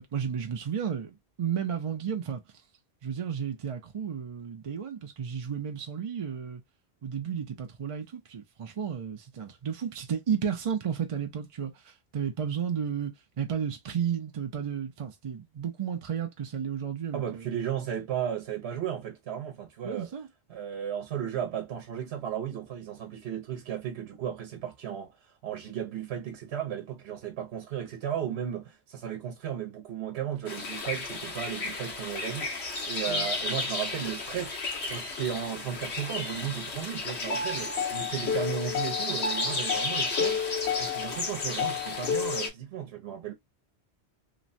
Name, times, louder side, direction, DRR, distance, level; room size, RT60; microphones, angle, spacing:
voice 1, 0.0-2.4 3.0-6.6 7.0-17.5 19.8-20.3 33.1-33.3, right 7 dB, 50° right, 0.4 m, -33 dB
voice 2, 17.1-20.1 20.5-32.6 32.9-34.6 34.9-40.4 40.8-43.3, right 9 dB, 75° right, 0.9 m, -35 dB
sound 1, 30.5-42.5, left 4 dB, 90° left, 1.3 m, -31 dB
3.0 x 2.1 x 2.5 m
omnidirectional pair, 1.1 m